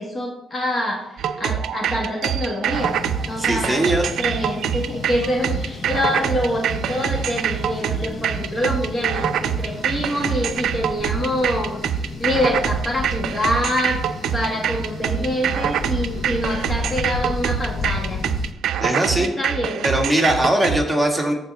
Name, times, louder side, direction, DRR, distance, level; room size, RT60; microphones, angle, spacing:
voice 1, 0.0-11.8 12.2-18.2 19.2-20.0, left 1 dB, 30° left, 1 dB, 1.4 m, -26 dB
sound 1, 1.2-20.8, right 9 dB, 75° right, 0.5 m, -25 dB
sound 2, 2.7-18.5, left 4 dB, 45° left, 0.8 m, -33 dB
voice 2, 3.4-4.1 18.8-19.3 19.8-21.3, right 1 dB, 5° right, 0 dB, 1.9 m, -20 dB
13.5 x 4.6 x 3.5 m, 0.83 s
cardioid pair, 90°, 0 cm